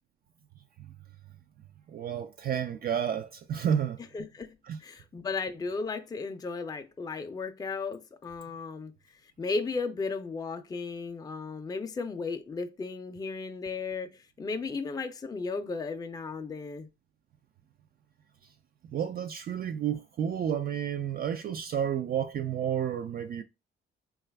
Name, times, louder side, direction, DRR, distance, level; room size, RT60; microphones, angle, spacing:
voice 1, 1.9-4.0 4.7-4.8 18.9-23.4, right 8 dB, 50° right, 0.4 m, -31 dB
voice 2, 4.1-4.5 4.8-8.9 9.4-16.9, left 4 dB, 20° left, 0.4 m, -35 dB
3.9 x 2.3 x 3.3 m
cardioid pair, 90°, 20 cm